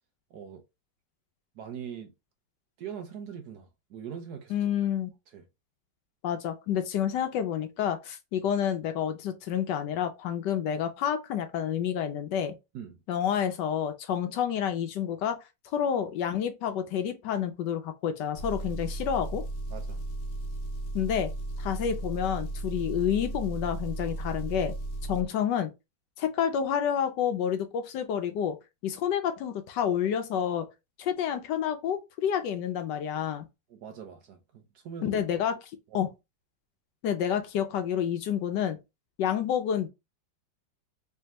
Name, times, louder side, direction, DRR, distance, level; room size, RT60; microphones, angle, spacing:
voice 1, 0.3-0.6 1.5-2.1 2.8-4.6 5.3-5.5 12.7-13.0 19.7-20.0 25.1-25.3 33.7-35.1 35.9-36.0, right 7 dB, 70° right, 1.1 m, -42 dB
voice 2, 4.5-5.1 6.2-12.5 13.1-15.4 15.7-19.4 20.9-21.3 21.6-24.7 25.1-25.7 26.2-28.6 28.8-30.7 31.0-33.5 35.0-36.1 37.0-38.8 39.2-39.9, left 9 dB, 75° left, 1.2 m, -29 dB
Engine, 18.4-25.3, right 2 dB, 55° left, 0.9 m, -35 dB
3.4 x 3.3 x 2.9 m
omnidirectional pair, 2.0 m